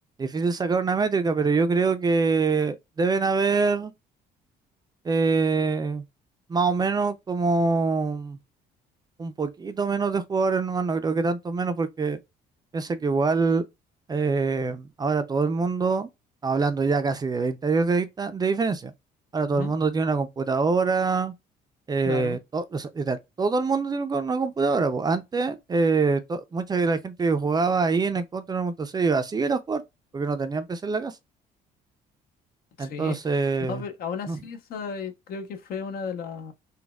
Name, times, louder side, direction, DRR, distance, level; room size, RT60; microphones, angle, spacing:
voice 1, 0.2-3.9 5.0-6.0 6.5-8.4 9.2-12.2 12.7-13.6 14.1-16.1 16.4-18.9 19.3-21.3 21.9-29.8 30.1-31.2 32.8-33.8 34.3-34.4, right 4 dB, 25° right, 0.4 m, -25 dB
voice 2, 22.0-22.4 32.8-33.2 33.6-36.5, left 6 dB, 60° left, 0.8 m, -34 dB
4.0 x 2.2 x 2.2 m
cardioid pair, 110°, 17 cm